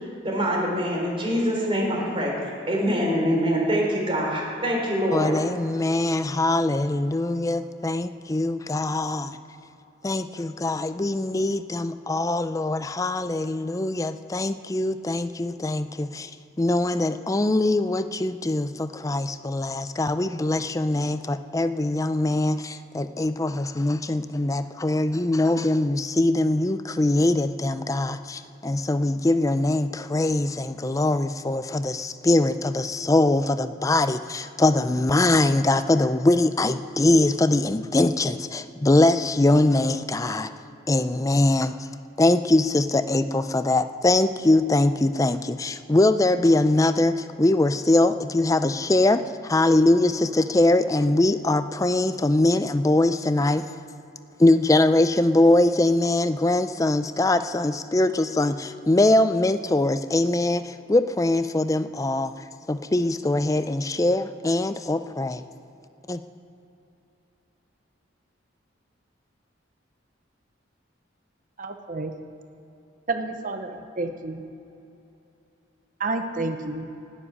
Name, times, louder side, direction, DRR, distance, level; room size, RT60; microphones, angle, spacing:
voice 1, 0.2-5.4, equal, 30° right, -1 dB, 3.3 m, -24 dB
voice 2, 5.1-9.3 10.0-16.3 16.6-40.5 40.9-41.7 42.2-53.7 54.4-62.3 62.7-65.4 66.1-66.2, left 2 dB, 15° left, 11 dB, 0.4 m, -22 dB
voice 3, 71.6-72.2 73.1-74.4 76.0-76.9, right 3 dB, 45° right, 6 dB, 0.8 m, -30 dB
13.0 x 7.7 x 9.8 m, 2.8 s
head